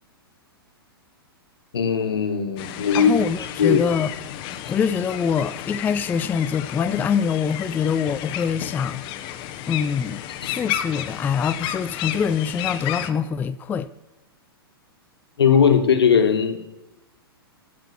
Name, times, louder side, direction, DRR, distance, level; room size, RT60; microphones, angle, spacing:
voice 1, 1.7-3.1 3.6-3.8 10.4-10.6 15.4-16.6, left 7 dB, 80° left, 1.5 m, -18 dB
sound 1, 2.6-13.1, left 11 dB, 40° left, 0.9 m, -32 dB
voice 2, 2.9-4.1 4.7-9.1 9.7-13.9, left 7 dB, 15° left, 0.3 m, -24 dB
16.0 x 6.0 x 6.0 m
hypercardioid pair, 110°, 13 cm